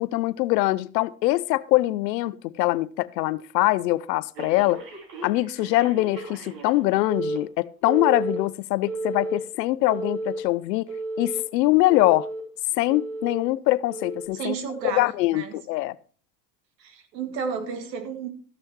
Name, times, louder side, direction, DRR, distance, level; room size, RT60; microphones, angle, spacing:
voice 1, 0.0-4.8 5.2-10.9 11.2-12.3 12.8-14.5 14.8-16.0, left 18 dB, 80° left, 0.7 m, -23 dB
Telephone, 4.4-6.8 7.1-7.4 7.9-8.4 8.9-9.4 9.9-10.4 10.9-11.4 11.9-12.4 12.9-13.4 13.9-14.2, right 2 dB, 65° right, 3.9 m, -32 dB
voice 2, 14.3-15.6 16.8-18.3, right 6 dB, 80° right, 2.2 m, -32 dB
13.5 x 6.4 x 4.7 m
hypercardioid pair, 95°, 49 cm